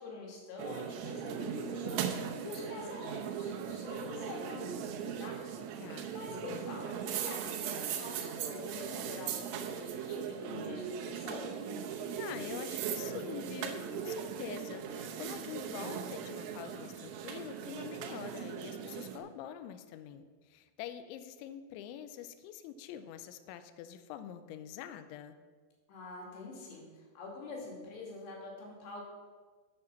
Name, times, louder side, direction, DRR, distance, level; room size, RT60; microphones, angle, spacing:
voice 1, 0.0-5.4 5.6-5.8 6.1-11.5 25.9-26.9 27.2-29.0, left 2 dB, 60° left, -2 dB, 4.1 m, -46 dB
sound 1, 0.6-19.2, right 7 dB, 80° right, 3.4 m, -39 dB
voice 2, 5.8-6.8 12.2-25.4, left 10 dB, 90° left, 10 dB, 2.6 m, -45 dB
8.3 x 7.9 x 6.8 m, 1.4 s
omnidirectional pair, 5.8 m